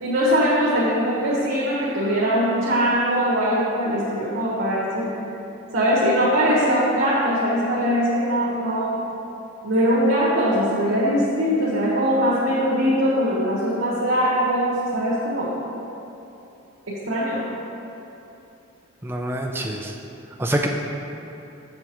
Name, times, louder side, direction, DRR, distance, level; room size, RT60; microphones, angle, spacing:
voice 1, 0.0-5.1 5.7-9.0 9.6-15.5 16.9-17.4, equal, 80° right, -9 dB, 1.3 m, -21 dB
voice 2, 19.0-19.9 20.4-20.7, right 1 dB, 10° right, 1 dB, 0.4 m, -25 dB
6.9 x 6.7 x 3.0 m, 2.8 s
head